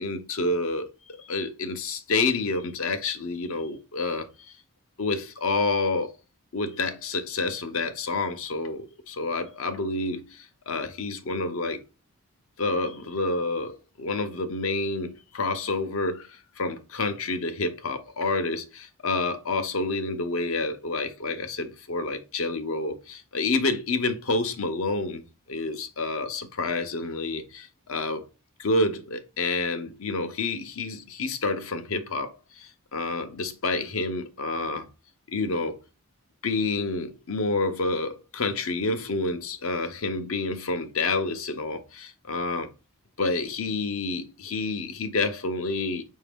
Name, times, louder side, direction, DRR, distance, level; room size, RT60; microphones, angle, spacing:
voice 1, 0.0-4.3 5.0-6.1 6.5-11.8 12.6-25.2 25.5-28.3 28.6-34.9 35.3-35.8 36.4-42.7 43.2-46.0, left 3 dB, 70° left, 0.7 m, -29 dB
4.9 x 2.7 x 3.4 m
head